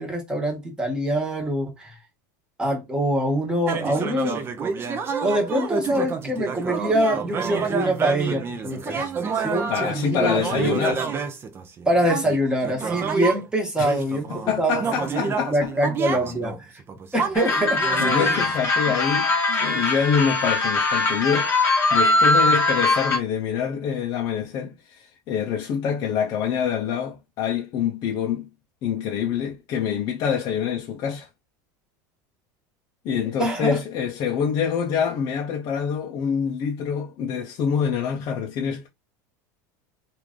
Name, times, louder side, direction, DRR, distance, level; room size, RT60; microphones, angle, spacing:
voice 1, 0.0-1.9 2.6-4.4 5.2-9.1 9.3-10.8 11.8-14.3 14.6-15.2 15.5-16.5 17.1-17.8 33.4-33.8, right 1 dB, 10° right, 1.2 m, -24 dB
sound 1, 3.7-13.4 13.8-18.6, right 5 dB, 25° right, 0.5 m, -29 dB
voice 2, 9.7-11.0 13.8-13.9 14.3-15.7 18.0-21.5 21.9-28.5 28.8-31.3 33.0-38.9, left 7 dB, 45° left, 0.5 m, -26 dB
sound 2, 17.3-23.2, left 2 dB, 25° left, 1.4 m, -21 dB
3.1 x 2.5 x 3.6 m
supercardioid pair, 145°, 10 cm